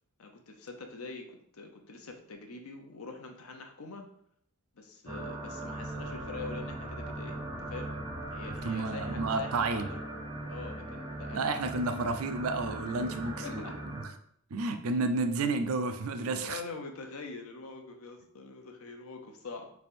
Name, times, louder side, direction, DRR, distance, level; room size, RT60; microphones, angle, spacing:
voice 1, 0.2-4.1 4.8-8.0 8.3-10.0 10.5-11.5 11.9-12.1 12.7-13.8 16.1-19.7, left 3 dB, 80° left, 4 dB, 0.7 m, -44 dB
sound 1, 5.1-14.1, right 1 dB, 20° right, 0.6 m, -39 dB
sound 2, 5.8-10.0, left 2 dB, 45° left, 0.4 m, -50 dB
voice 2, 8.7-9.9 11.3-13.6 13.9-14.0 14.5-16.6, right 3 dB, 80° right, 8 dB, 0.4 m, -31 dB
3.4 x 2.6 x 4.2 m, 0.68 s
head